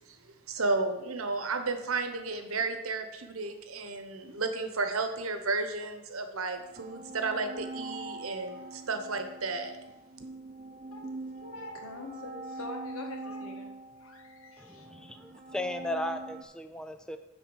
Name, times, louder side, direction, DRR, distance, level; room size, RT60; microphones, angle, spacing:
voice 1, 0.5-9.8, right 3 dB, 80° right, 7 dB, 1.1 m, -33 dB
sound 1, 6.6-16.4, right 2 dB, 30° right, 0.6 m, -43 dB
voice 2, 10.9-14.9, left 2 dB, 80° left, 2 dB, 1.7 m, -45 dB
voice 3, 14.6-17.2, left 1 dB, 5° left, 8 dB, 0.3 m, -36 dB
10.0 x 4.1 x 7.2 m, 0.99 s
head